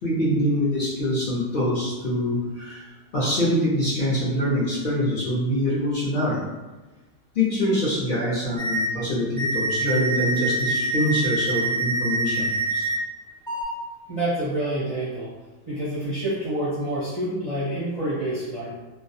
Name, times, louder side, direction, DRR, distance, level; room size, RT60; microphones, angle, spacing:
voice 1, 0.0-2.9 3.1-6.4 7.3-12.9, equal, 55° left, -8 dB, 0.7 m, -24 dB
sound 1, 8.6-8.9 9.4-13.0 13.5-13.6, right 2 dB, 5° left, 0.6 m, -25 dB
voice 2, 14.1-15.3 15.7-18.7, right 1 dB, 40° right, -10 dB, 0.5 m, -27 dB
2.3 x 2.1 x 2.7 m, 1.2 s
omnidirectional pair, 1.3 m